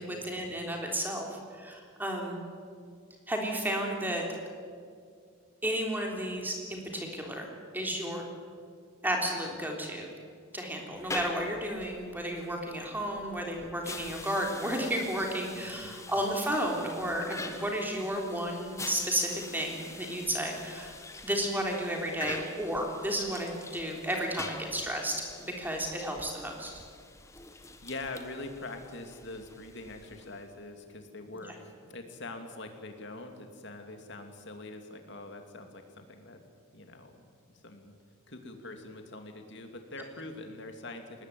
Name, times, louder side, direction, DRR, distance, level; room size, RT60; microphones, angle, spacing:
voice 1, 0.0-2.4 3.3-4.2 5.6-8.2 9.0-10.1 10.5-20.9 21.2-26.7, right 1 dB, 10° right, 1 dB, 3.5 m, -33 dB
sound 1, 10.9-30.5, left 3 dB, 15° left, 1.4 m, -45 dB
voice 2, 15.5-16.0 27.5-36.4 36.7-37.3 37.6-37.9 38.3-41.0, left 2 dB, 55° left, 5 dB, 2.6 m, -44 dB
21.0 x 19.0 x 9.3 m, 2.2 s
head